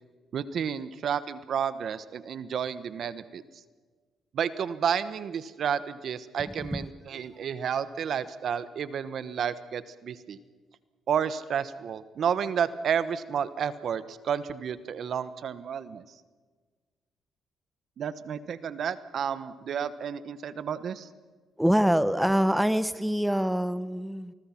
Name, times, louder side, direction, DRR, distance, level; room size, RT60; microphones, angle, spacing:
voice 1, 0.3-3.4 4.3-10.4 11.1-16.0 18.0-21.1, right 8 dB, 60° right, 14 dB, 1.1 m, -31 dB
voice 2, 21.6-24.3, equal, 5° right, 14 dB, 1.0 m, -25 dB
26.5 x 20.0 x 5.9 m, 1.4 s
cardioid pair, 90°, 0 cm